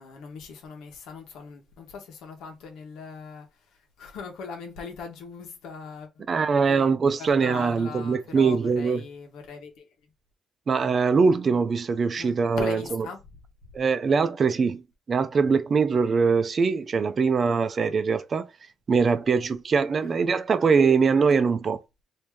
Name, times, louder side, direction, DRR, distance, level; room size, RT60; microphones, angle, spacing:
voice 1, 0.0-3.5 4.0-6.3 6.7-9.9 12.2-13.2 20.0-20.2, left 4 dB, 90° left, 1.1 m, -40 dB
voice 2, 6.3-9.0 10.7-13.1 13.7-14.8 15.1-18.5 18.9-21.8, right 5 dB, 45° right, 0.5 m, -22 dB
3.0 x 2.7 x 3.5 m
cardioid pair, 95°, 0 cm